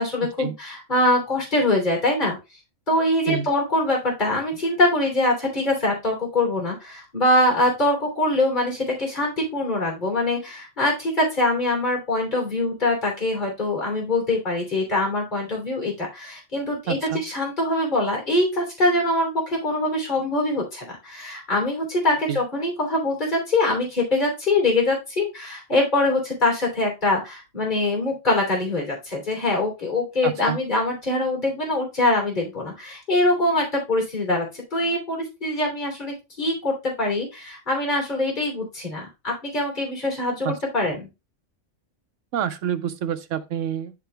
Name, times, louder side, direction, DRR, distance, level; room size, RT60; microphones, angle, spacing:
voice 1, 0.0-2.4 2.9-41.1, left 2 dB, 35° left, 3.3 m, -23 dB
voice 2, 16.9-17.2 22.3-22.4 30.2-30.6 40.4-40.6 42.3-43.9, right 9 dB, 75° right, 1.1 m, -27 dB
11.0 x 3.7 x 3.3 m
omnidirectional pair, 1.3 m